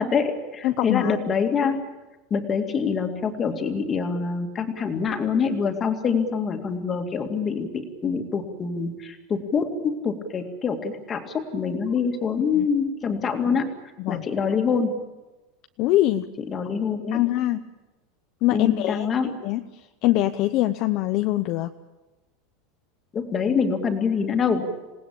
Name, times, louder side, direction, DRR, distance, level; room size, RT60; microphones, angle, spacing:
voice 1, 0.0-1.8 2.3-13.7 14.1-15.0 16.4-17.2 18.5-19.3 23.1-24.7, left 6 dB, 20° left, 5 dB, 2.3 m, -25 dB
voice 2, 0.6-1.2 12.5-12.7 14.0-14.2 15.8-16.3 17.1-17.6 18.4-19.6 20.0-21.7, left 15 dB, 40° left, 9 dB, 0.8 m, -23 dB
27.5 x 18.5 x 8.7 m, 1.1 s
supercardioid pair, 175°, 0 cm